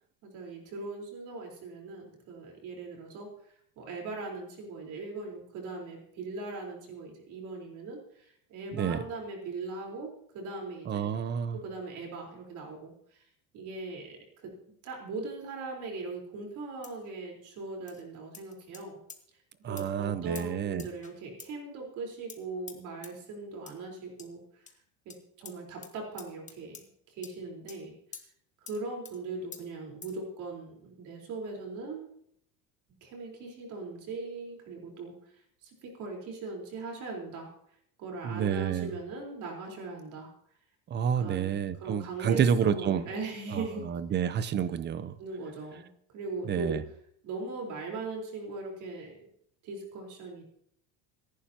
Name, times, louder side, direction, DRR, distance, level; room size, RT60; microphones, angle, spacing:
voice 1, 0.2-3.3 3.8-11.1 11.5-13.2 13.5-14.5 14.8-19.0 19.7-24.4 25.1-27.9 28.7-32.1 33.0-35.1 35.6-37.5 38.0-40.3 41.2-44.2 45.2-45.9 46.1-46.8 47.2-49.3 49.6-50.4, right 3 dB, 50° right, 0 dB, 4.3 m, -40 dB
voice 2, 8.7-9.0 10.9-11.6 19.6-20.9 38.2-38.9 40.9-43.0 43.5-45.1 46.5-46.8, right 8 dB, 25° right, 14 dB, 0.8 m, -29 dB
sound 1, 16.8-17.1 17.9-18.0 18.3-18.8 19.1-19.2 19.8-19.9 20.3-20.5 20.8-21.1 21.4-21.5 22.3-22.4 22.7-22.8 23.0-23.1 23.7-23.8 24.2-24.3 24.7-24.8 25.1-25.2 25.4-25.5 25.8-25.9 26.2-26.9 27.2-27.3 27.7-27.8 28.1-28.3 28.7-28.8 29.0-29.2 29.5-29.6 30.0-30.2, left 6 dB, 20° left, 1.4 m, -46 dB
26.0 x 11.5 x 2.9 m, 0.68 s
cardioid pair, 145°, 39 cm